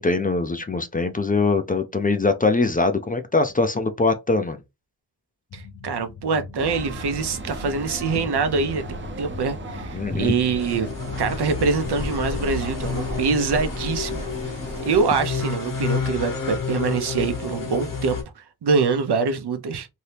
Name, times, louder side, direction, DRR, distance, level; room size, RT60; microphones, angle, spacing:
voice 1, 0.0-4.6 9.9-10.3, left 3 dB, 25° left, 0.4 m, -22 dB
sound 1, 5.5-12.7, left 5 dB, 75° left, 0.6 m, -40 dB
voice 2, 5.5-10.9 11.2-14.2 14.8-19.9, right 5 dB, 85° right, 0.7 m, -24 dB
sound 2, 6.6-15.0, right 2 dB, 30° right, 0.6 m, -35 dB
sound 3, 10.6-18.2, left 5 dB, 55° left, 1.0 m, -30 dB
2.8 x 2.8 x 3.2 m
wide cardioid pair, 140°, 38 cm